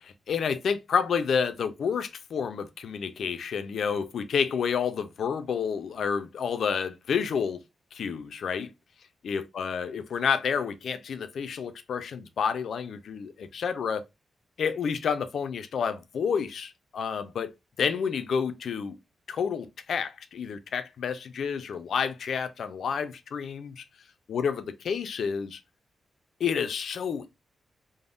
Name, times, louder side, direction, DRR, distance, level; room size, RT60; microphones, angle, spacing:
voice 1, 0.0-7.6 7.9-8.7 9.2-14.0 14.6-17.5 17.8-19.0 19.3-23.8 24.3-25.6 26.4-27.4, left 6 dB, 75° left, 0.3 m, -29 dB
3.4 x 2.0 x 2.4 m
cardioid pair, 90°, 0 cm